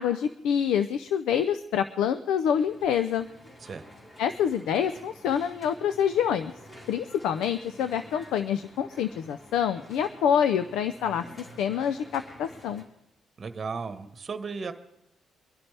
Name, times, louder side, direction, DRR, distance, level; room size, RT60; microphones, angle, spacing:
voice 1, 0.0-3.3 4.2-6.5 6.9-12.9, left 8 dB, 90° left, 11 dB, 0.5 m, -26 dB
sound 1, 2.5-12.8, equal, 30° left, 4.1 m, -50 dB
voice 2, 13.4-14.7, right 5 dB, 40° right, 9 dB, 1.3 m, -35 dB
23.5 x 11.0 x 3.4 m, 0.82 s
cardioid pair, 90°, 0 cm